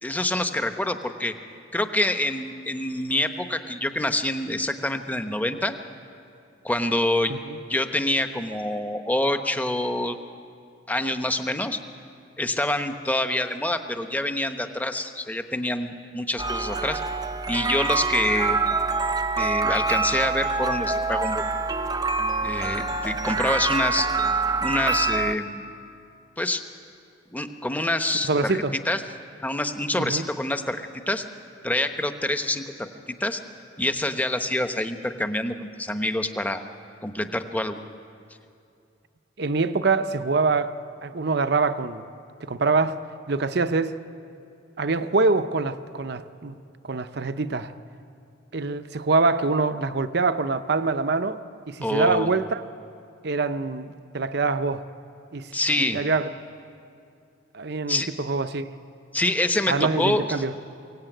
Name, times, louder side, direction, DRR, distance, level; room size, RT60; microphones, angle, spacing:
voice 1, 0.0-1.3 1.7-5.8 6.6-7.3 7.7-10.2 10.9-11.8 12.4-17.0 17.5-18.8 19.4-21.4 22.4-24.1 24.6-25.7 26.4-26.6 27.3-29.0 29.4-31.2 31.6-32.9 33.2-33.4 33.8-36.6 37.0-37.8 51.8-52.3 55.5-56.0 57.9-58.1 59.1-60.3, left 1 dB, 10° left, 1.0 m, -26 dB
sound 1, 16.4-25.3, right 3 dB, 20° right, 0.7 m, -25 dB
voice 2, 28.3-28.7 30.0-30.3 39.4-40.7 41.0-42.0 42.4-44.0 44.8-46.6 46.8-47.7 48.5-52.6 53.2-54.8 55.3-55.5 55.9-56.3 57.5-58.7 59.7-60.5, right 3 dB, 60° right, 0.8 m, -24 dB
23.0 x 17.5 x 9.1 m
head